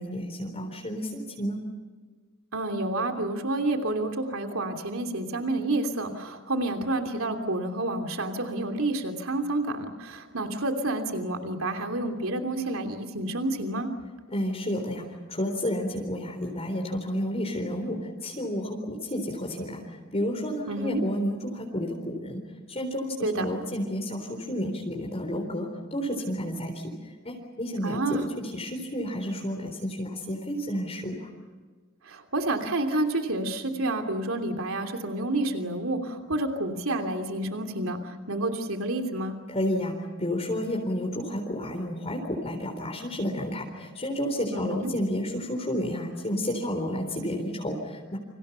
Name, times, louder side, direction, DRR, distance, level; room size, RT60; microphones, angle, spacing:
voice 1, 0.0-1.6 14.3-22.4 22.7-31.3 39.5-48.2, equal, 30° left, 1 dB, 3.9 m, -31 dB
voice 2, 2.5-13.9 20.7-21.0 23.2-23.5 27.8-28.3 32.0-39.4 44.5-44.9, right 2 dB, 85° right, 4 dB, 3.0 m, -29 dB
30.0 x 26.5 x 5.8 m, 1.4 s
head